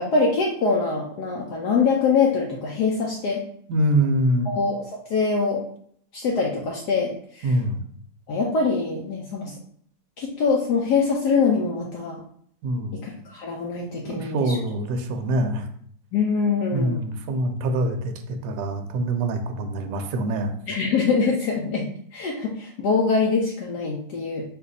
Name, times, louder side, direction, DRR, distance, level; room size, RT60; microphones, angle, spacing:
voice 1, 0.0-3.4 4.5-4.8 5.1-5.6 6.1-7.5 8.3-9.5 10.2-12.2 13.0-14.6 16.1-16.9 20.7-21.9 22.1-24.4, left 4 dB, 70° left, -1 dB, 1.1 m, -23 dB
voice 2, 3.7-4.5 7.4-7.8 12.6-13.0 14.0-15.7 16.7-20.5, right 1 dB, 70° right, 5 dB, 1.1 m, -24 dB
4.3 x 2.6 x 4.0 m, 0.62 s
omnidirectional pair, 2.1 m